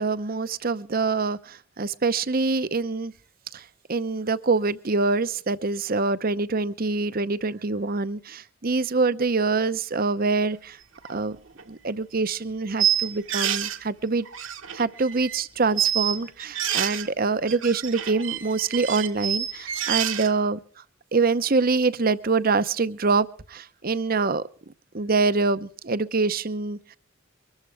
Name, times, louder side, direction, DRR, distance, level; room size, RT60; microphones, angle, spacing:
voice 1, 0.0-3.1 3.5-3.6 3.9-10.8 11.1-11.4 11.7-14.2 14.7-20.6 21.1-24.4 24.9-26.8, right 4 dB, 45° right, 0.8 m, -25 dB
sound 1, 11.1-11.2 11.6-11.7 12.8-13.8 14.3-15.4 15.7-17.1 17.5-20.3, right 10 dB, 65° right, 1.3 m, -27 dB
24.0 x 14.0 x 3.4 m
head